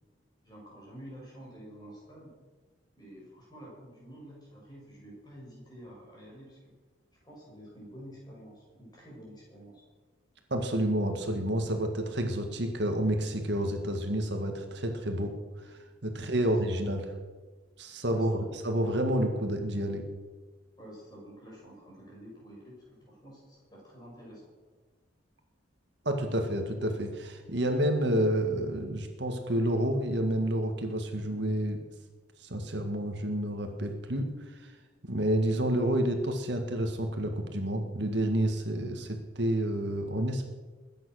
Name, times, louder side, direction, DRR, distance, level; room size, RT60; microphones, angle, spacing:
voice 1, 0.4-2.3 3.0-6.7 7.2-9.8 16.1-16.7 18.1-18.5 20.8-24.4, equal, 20° left, -4 dB, 7.0 m, -49 dB
voice 2, 10.5-15.3 15.6-17.0 17.8-20.0 26.1-31.8 32.4-34.7 35.0-40.5, right 1 dB, 60° right, 4 dB, 1.8 m, -29 dB
22.0 x 9.4 x 6.4 m, 1.3 s
head